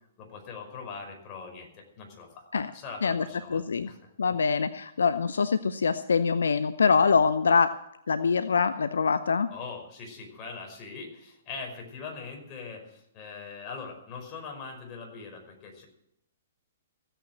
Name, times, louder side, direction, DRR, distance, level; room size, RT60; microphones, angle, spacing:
voice 1, 0.2-4.1 9.5-15.8, left 4 dB, 30° left, 1 dB, 5.3 m, -42 dB
voice 2, 3.0-3.9 4.2-7.8 8.1-9.5, left 5 dB, 75° left, 12 dB, 0.6 m, -24 dB
16.0 x 9.0 x 7.6 m, 0.77 s
hypercardioid pair, 120°, 0 cm